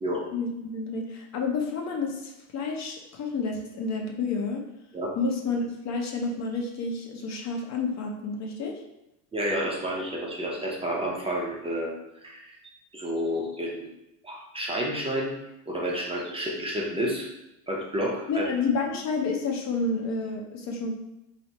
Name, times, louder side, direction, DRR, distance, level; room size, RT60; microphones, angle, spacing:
voice 1, 0.3-4.6 5.2-8.7 18.3-20.9, left 4 dB, 40° left, 1 dB, 0.7 m, -30 dB
voice 2, 9.3-11.9 12.2-13.9 14.2-15.3 15.7-17.3 17.7-18.4, equal, 15° right, -2 dB, 0.7 m, -30 dB
3.2 x 2.7 x 4.1 m, 0.90 s
supercardioid pair, 105°, 42 cm